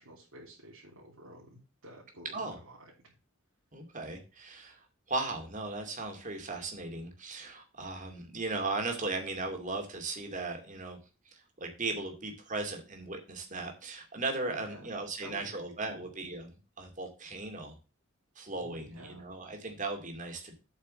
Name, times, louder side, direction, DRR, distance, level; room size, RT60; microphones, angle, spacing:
voice 1, 0.0-2.8 3.0-3.1 14.5-14.9 15.2-16.1 18.5-19.2, right 1 dB, 90° right, -5 dB, 3.4 m, -51 dB
voice 2, 3.7-11.0 11.3-16.5 16.8-17.7 18.4-20.6, right 3 dB, 35° right, 3 dB, 2.4 m, -37 dB
8.4 x 5.3 x 6.3 m, 0.33 s
head